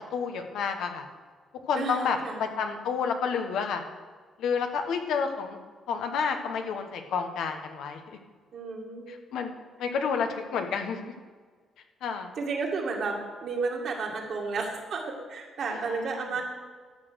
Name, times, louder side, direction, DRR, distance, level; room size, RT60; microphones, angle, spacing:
voice 1, 0.1-1.0 1.6-3.8 4.4-5.6 5.9-8.2 9.1-9.5 9.8-11.1 12.0-12.3 15.7-16.0, left 6 dB, 80° left, 5 dB, 1.2 m, -30 dB
voice 2, 1.8-2.5 8.5-9.1 12.4-15.0 15.3-16.4, right 4 dB, 60° right, 0 dB, 2.3 m, -32 dB
13.0 x 6.2 x 6.4 m, 1.6 s
cardioid pair, 90°, 0 cm